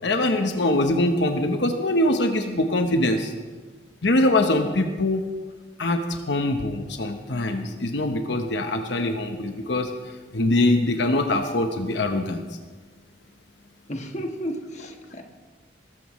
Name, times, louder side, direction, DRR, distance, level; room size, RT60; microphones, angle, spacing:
voice 1, 0.0-3.3 4.0-5.3 5.8-9.9 10.3-12.4, left 1 dB, 70° left, 5 dB, 1.0 m, -23 dB
voice 2, 13.9-15.2, equal, 40° left, 3 dB, 1.4 m, -33 dB
21.5 x 13.5 x 3.1 m, 1.4 s
head